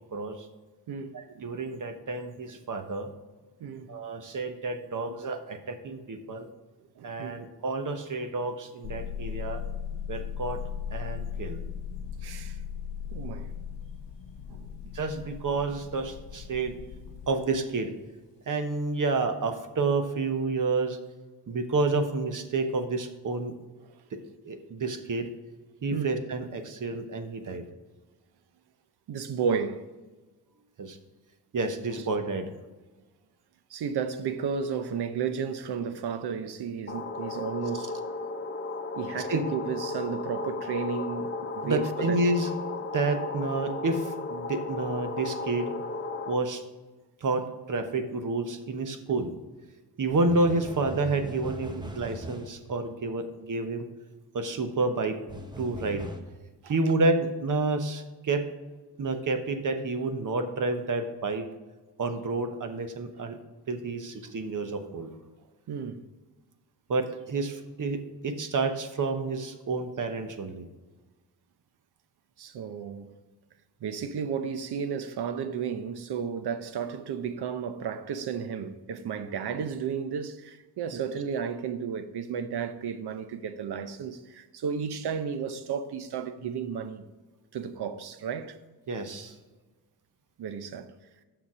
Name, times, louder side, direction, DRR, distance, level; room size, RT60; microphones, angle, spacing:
voice 1, 0.1-0.5 1.1-3.1 3.9-6.5 7.0-9.6 10.1-10.6 10.9-11.6 14.9-16.7 17.3-17.9 18.5-21.0 21.5-23.5 24.1-24.2 24.4-25.3 25.8-27.6 30.8-31.0 31.5-32.5 39.3-39.4 41.6-42.5 42.9-45.7 46.3-46.6 47.2-49.3 50.0-53.9 54.3-55.2 55.6-56.0 56.6-58.4 59.0-61.5 62.0-63.4 63.7-65.1 66.9-70.7 88.9-89.4, right 3 dB, 50° right, 1.0 m, -29 dB
voice 2, 0.9-1.6 3.6-4.0 4.9-5.2 7.0-7.4 12.2-12.6 13.1-13.5 14.5-14.8 23.9-24.0 25.9-26.1 29.1-29.9 31.9-32.0 33.7-37.9 39.0-42.2 49.1-49.2 55.9-56.0 56.6-56.7 65.7-66.0 72.4-73.1 73.8-87.1 87.5-88.6 90.4-90.9, right 6 dB, 70° right, 0.8 m, -33 dB
sound 1, 8.8-17.7, left 8 dB, 90° left, 0.6 m, -38 dB
sound 2, 36.9-46.3, left 3 dB, 30° left, 0.8 m, -35 dB
sound 3, 50.1-52.6 55.3-56.2, equal, 10° right, 0.9 m, -40 dB
6.9 x 5.9 x 4.9 m
cardioid pair, 100°, 40 cm